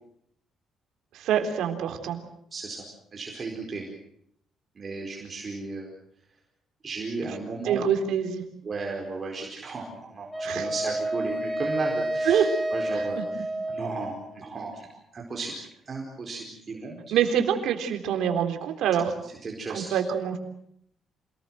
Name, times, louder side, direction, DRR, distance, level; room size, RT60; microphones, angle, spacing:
voice 1, 1.1-2.2 7.6-8.4 10.5-10.7 12.3-12.5 12.9-13.2 17.1-19.1 19.7-20.4, right 8 dB, 80° right, 6 dB, 3.7 m, -25 dB
voice 2, 2.5-2.8 3.1-3.9 4.7-5.9 6.8-7.9 8.6-12.4 12.7-15.5 15.9-17.1 19.2-20.0, right 3 dB, 30° right, 0 dB, 4.5 m, -35 dB
Wind instrument woodwind instrument, 10.3-14.4, right 1 dB, 5° left, 5.3 m, -30 dB
27.5 x 19.5 x 7.8 m, 0.72 s
cardioid pair, 135°, 0 cm